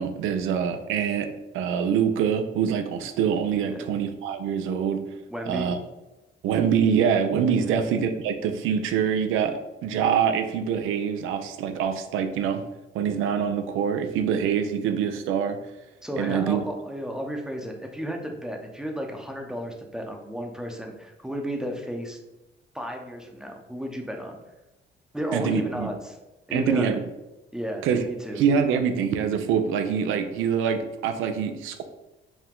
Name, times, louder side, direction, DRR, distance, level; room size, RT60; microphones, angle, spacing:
voice 1, 0.0-5.0 5.5-5.8 6.4-12.6 12.9-15.6 16.2-16.6 25.3-25.9 26.5-27.0 27.8-28.0 28.4-31.8, right 7 dB, 90° right, 8 dB, 0.5 m, -25 dB
voice 2, 5.3-5.7 7.6-7.8 16.0-22.2 22.7-24.4 25.1-26.2 26.5-27.0 27.5-28.4, equal, 5° right, 2 dB, 0.7 m, -33 dB
4.6 x 2.2 x 3.6 m, 1.0 s
cardioid pair, 90°, 20 cm